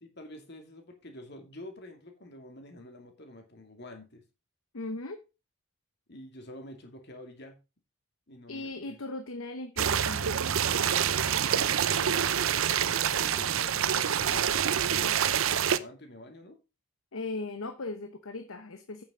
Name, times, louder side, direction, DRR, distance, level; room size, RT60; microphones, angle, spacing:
voice 1, 0.0-4.2 6.1-7.6 8.3-9.0 12.0-16.6, left 1 dB, 50° left, 4 dB, 2.5 m, -47 dB
voice 2, 4.7-5.2 8.5-10.4 17.1-19.0, left 2 dB, 80° left, 8 dB, 1.0 m, -38 dB
sound 1, 9.8-15.8, right 8 dB, 75° right, 0.6 m, -26 dB
8.9 x 7.3 x 5.0 m, 0.28 s
head